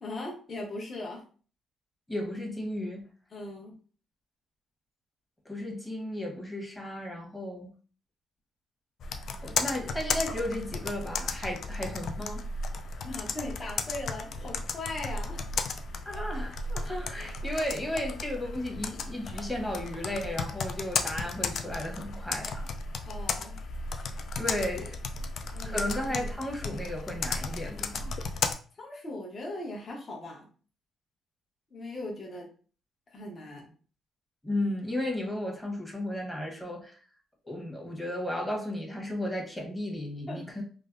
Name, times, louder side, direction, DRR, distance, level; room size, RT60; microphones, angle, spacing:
voice 1, 0.0-1.2 3.3-3.7 13.0-15.4 16.1-16.2 23.1-23.6 25.5-25.8 28.8-30.5 31.7-32.5 33.1-33.7 40.3-40.4, left 2 dB, 40° left, -2 dB, 0.9 m, -39 dB
voice 2, 2.1-3.0 5.4-7.7 9.4-12.5 16.0-22.7 24.3-25.0 25.6-28.1 34.4-37.0 37.4-40.6, left 1 dB, 10° left, 0 dB, 1.0 m, -34 dB
Computer keyboard, 9.0-28.5, left 4 dB, 65° left, 0.3 m, -34 dB
3.2 x 2.0 x 2.5 m, 0.40 s
cardioid pair, 90°, 0 cm